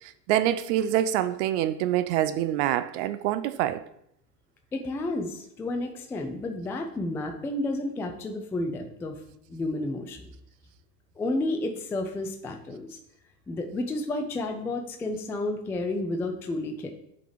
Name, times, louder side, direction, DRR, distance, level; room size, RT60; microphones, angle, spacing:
voice 1, 0.0-3.8, right 12 dB, 45° right, 0.5 m, -26 dB
voice 2, 4.7-9.2 9.5-10.3 11.2-13.0 13.5-16.9, left 2 dB, 5° left, 0.3 m, -31 dB
7.4 x 4.1 x 5.0 m
figure-of-eight pair, 80°, 49 cm